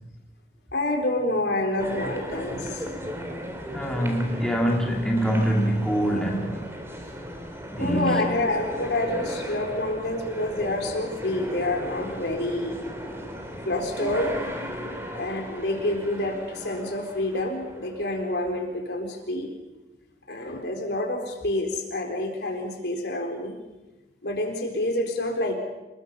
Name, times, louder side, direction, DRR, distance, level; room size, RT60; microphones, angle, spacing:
voice 1, 0.7-2.8 3.2-3.3 7.8-12.8 13.6-14.4 15.1-19.5 20.3-23.6 24.2-25.6, left 1 dB, 65° left, 3 dB, 4.1 m, -28 dB
sound 1, 1.8-18.4, equal, 15° right, 3.3 m, -36 dB
voice 2, 3.7-6.7 7.7-8.2, equal, 5° left, -1 dB, 2.8 m, -24 dB
27.5 x 21.0 x 5.6 m, 1.1 s
head